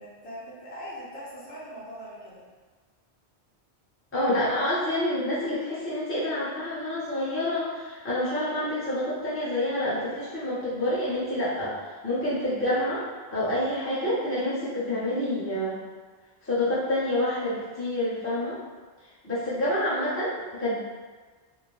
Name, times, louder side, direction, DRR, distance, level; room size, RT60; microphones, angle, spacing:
voice 1, 0.0-2.4, equal, 75° left, -7 dB, 1.0 m, -41 dB
voice 2, 4.1-13.0 13.3-15.8 16.4-18.6 19.2-20.8, left 1 dB, 15° left, -10 dB, 0.7 m, -28 dB
2.6 x 2.0 x 3.0 m, 1.4 s
omnidirectional pair, 1.1 m